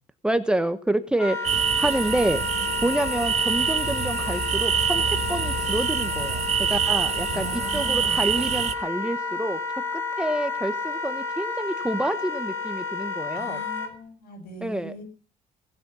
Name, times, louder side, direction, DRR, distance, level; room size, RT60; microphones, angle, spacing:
voice 1, 0.2-2.4 2.8-6.4 6.7-9.6 9.9-13.6 14.6-15.0, right 1 dB, 5° right, 10 dB, 1.0 m, -28 dB
Wind instrument woodwind instrument, 1.2-13.9, left 4 dB, 15° left, 2.7 m, -31 dB
sound 1, 1.4-8.7, right 8 dB, 45° right, 1.5 m, -26 dB
voice 2, 7.3-8.3 13.3-15.0, equal, 75° left, 7 dB, 7.2 m, -40 dB
18.5 x 12.0 x 5.5 m, 0.37 s
cardioid pair, 150°, 15 cm